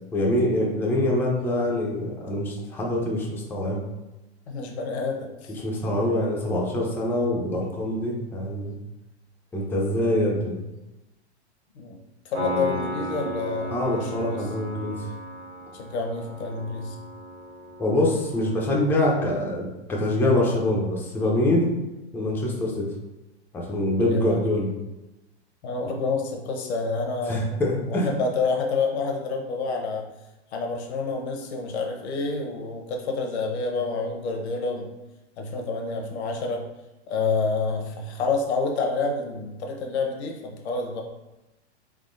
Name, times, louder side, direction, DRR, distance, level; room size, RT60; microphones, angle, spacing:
voice 1, 0.1-3.8 5.6-8.7 9.5-10.6 13.7-15.0 17.8-21.7 22.1-22.9 23.5-24.7 27.3-28.1, left 1 dB, 5° left, -2 dB, 0.4 m, -24 dB
voice 2, 4.5-5.6 10.0-10.2 11.8-12.0 12.2-14.4 15.7-17.0 24.1-24.4 25.6-30.0 30.5-34.9 35.4-36.6 37.1-41.0, left 4 dB, 70° left, 2 dB, 0.8 m, -28 dB
Piano, 12.3-19.1, equal, 65° right, 1.2 m, -36 dB
3.6 x 3.6 x 2.5 m, 0.98 s
hypercardioid pair, 125°, 34 cm